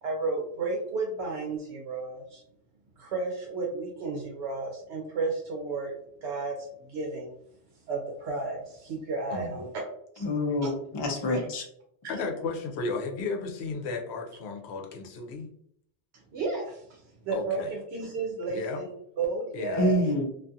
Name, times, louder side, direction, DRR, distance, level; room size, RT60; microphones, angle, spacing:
voice 1, 0.0-2.4 3.0-5.9 6.2-7.3 7.9-9.7 10.2-10.3 10.6-10.7 16.3-20.0, right 3 dB, 80° right, -1 dB, 0.8 m, -33 dB
voice 2, 10.2-11.6 19.8-20.2, left 1 dB, 35° left, 1 dB, 0.4 m, -26 dB
voice 3, 12.1-15.5 17.3-17.7 18.5-18.8 19.5-19.9, left 4 dB, 80° left, 3 dB, 0.8 m, -34 dB
2.4 x 2.3 x 2.6 m, 0.69 s
omnidirectional pair, 1.1 m